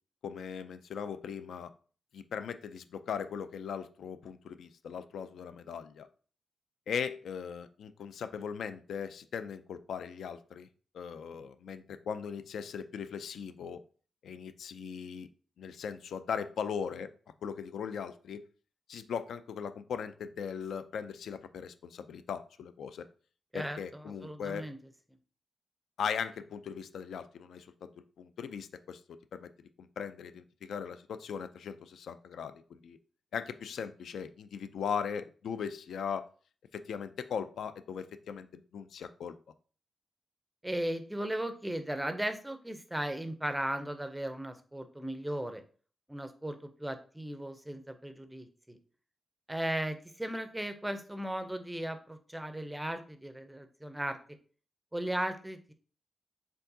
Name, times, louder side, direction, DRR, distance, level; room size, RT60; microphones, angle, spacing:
voice 1, 0.2-1.7 2.1-6.1 6.9-10.7 10.9-13.8 14.2-15.3 15.6-17.1 17.4-18.4 18.9-23.0 23.5-24.7 26.0-27.9 28.2-29.5 29.8-33.0 33.3-36.3 36.7-39.4, left 7 dB, 85° left, 11 dB, 0.3 m, -39 dB
voice 2, 23.5-24.8 40.6-45.6 46.1-48.8 49.5-54.2 54.9-55.7, right 1 dB, 5° right, 8 dB, 0.4 m, -36 dB
4.5 x 3.6 x 2.6 m, 0.41 s
wide cardioid pair, 155°, 0 cm